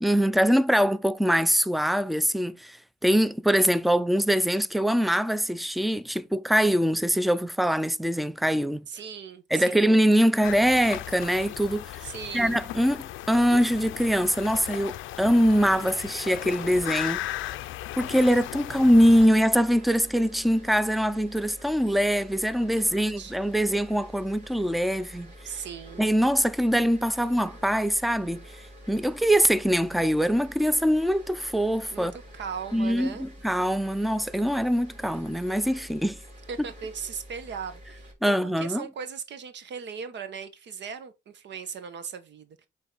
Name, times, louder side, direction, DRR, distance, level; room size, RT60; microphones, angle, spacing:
voice 1, 0.0-2.8 3.0-8.9 9.5-12.1 12.3-17.2 18.0-25.3 26.0-28.5 28.9-32.1 32.7-36.2 38.2-38.9, equal, ahead, 0.5 m, -23 dB
voice 2, 8.9-9.9 12.0-12.6 22.8-23.3 25.4-26.1 31.9-33.3 36.5-42.7, right 6 dB, 65° right, 1.0 m, -38 dB
sound 1, 10.4-19.3, left 15 dB, 85° left, 0.5 m, -36 dB
sound 2, 18.9-38.1, equal, 35° right, 3.6 m, -47 dB
7.7 x 3.6 x 3.9 m
cardioid pair, 90°, 20 cm